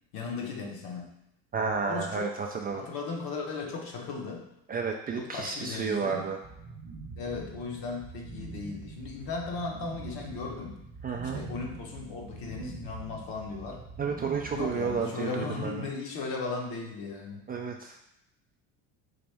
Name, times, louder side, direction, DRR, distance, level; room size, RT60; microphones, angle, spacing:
voice 1, 0.1-1.2 1.9-2.3 2.7-4.5 5.2-6.3 7.2-10.8 11.3-13.9 14.5-17.5, left 4 dB, 60° left, 1 dB, 1.1 m, -36 dB
voice 2, 1.5-2.8 4.7-6.4 11.0-11.4 14.0-15.9 17.5-18.0, right 5 dB, 25° right, 2 dB, 0.3 m, -31 dB
sound 1, 6.4-15.0, right 3 dB, 45° right, 0.8 m, -44 dB
4.1 x 2.5 x 3.4 m, 0.85 s
hypercardioid pair, 80°, 41 cm